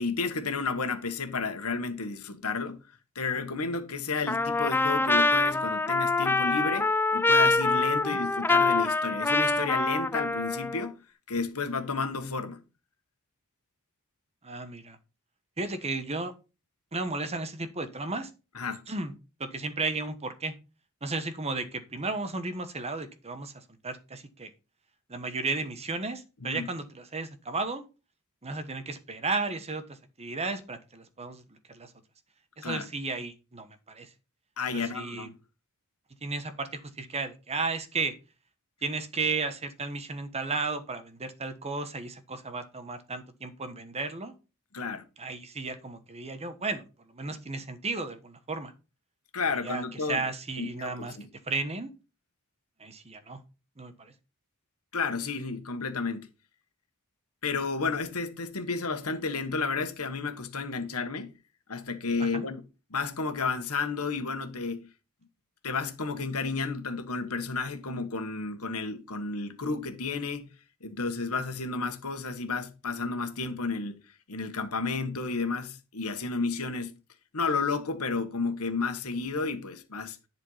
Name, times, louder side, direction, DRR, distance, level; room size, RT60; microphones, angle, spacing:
voice 1, 0.0-2.8 3.1-10.9 11.3-12.6 18.5-18.8 26.4-26.7 32.6-32.9 34.6-35.3 44.7-45.0 49.3-50.2 50.6-51.3 54.9-56.3 57.4-61.3 61.7-62.6 62.9-64.8 65.6-70.5 70.8-76.9 77.3-80.2, left 4 dB, 75° left, 1.5 m, -32 dB
Trumpet, 4.3-10.9, left 3 dB, 10° left, 0.4 m, -25 dB
voice 2, 14.4-15.0 15.6-16.3 16.9-18.3 18.9-19.1 19.4-20.5 21.0-24.5 25.1-27.8 28.4-31.9 32.6-34.1 34.7-35.3 36.2-38.1 38.8-44.3 45.2-46.8 47.1-48.7 49.5-51.2 51.4-51.9 52.8-53.4 53.8-54.1 62.2-62.5, right 3 dB, 30° right, 1.2 m, -34 dB
10.5 x 4.6 x 5.7 m
head